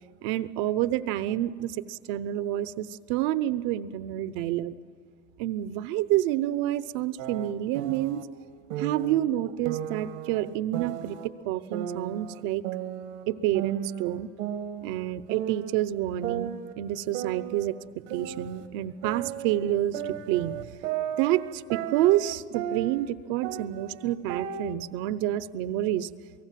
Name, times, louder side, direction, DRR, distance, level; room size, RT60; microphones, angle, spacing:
voice 1, 0.2-4.8 5.4-8.2 8.8-11.2 11.4-12.6 13.3-14.3 14.8-17.8 18.1-20.6 21.2-26.1, right 13 dB, 60° right, 15 dB, 0.9 m, -28 dB
sound 1, 7.2-8.2 8.7-9.2 9.7-11.3 11.7-13.3 13.5-15.0 15.3-15.8 16.2-18.7 19.0-23.1 23.4-24.8, right 10 dB, 80° right, 1.7 m, -35 dB
28.0 x 18.5 x 7.6 m, 2.3 s
supercardioid pair, 145°, 36 cm